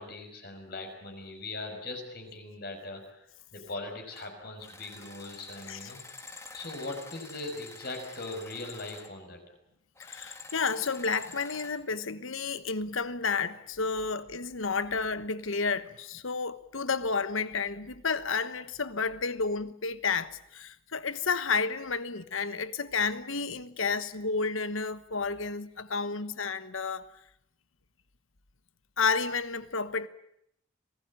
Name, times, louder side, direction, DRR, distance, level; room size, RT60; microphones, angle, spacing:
voice 1, 0.0-6.0 6.5-9.4, left 2 dB, 50° left, 5.9 m, -40 dB
sound 1, 4.1-4.3 4.6-9.1 10.0-11.8, left 3 dB, 15° left, 1.7 m, -48 dB
voice 2, 10.0-27.1 29.0-30.1, left 4 dB, 85° left, 1.2 m, -31 dB
27.0 x 18.0 x 8.8 m
head